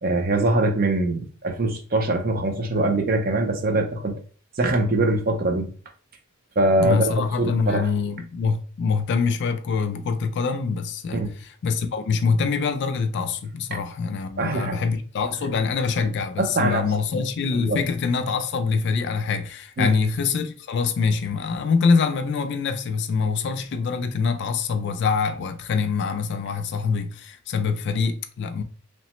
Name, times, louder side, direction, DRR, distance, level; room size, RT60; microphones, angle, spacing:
voice 1, 0.0-4.2 4.6-5.7 6.6-7.1 7.4-7.9 11.1-11.3 14.4-14.8 16.4-16.8 17.5-17.8 19.8-19.9, right 2 dB, 45° right, 0.5 m, -23 dB
voice 2, 6.8-28.6, left 5 dB, 55° left, 0.4 m, -24 dB
3.1 x 2.0 x 2.9 m
head